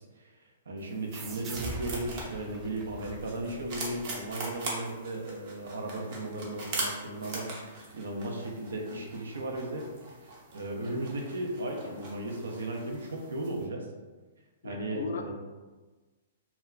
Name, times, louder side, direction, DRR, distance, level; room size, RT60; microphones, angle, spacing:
voice 1, 0.7-9.9 10.5-13.9 14.6-15.3, right 1 dB, 90° right, 1 dB, 0.5 m, -36 dB
sound 1, 0.8-13.6, right 2 dB, 50° right, 0.7 m, -42 dB
sound 2, 1.1-4.3, right 2 dB, 20° right, 0.3 m, -42 dB
voice 2, 14.6-15.3, left 4 dB, 75° left, 5 dB, 0.3 m, -37 dB
2.2 x 2.1 x 3.6 m, 1.3 s
hypercardioid pair, 140°, 0 cm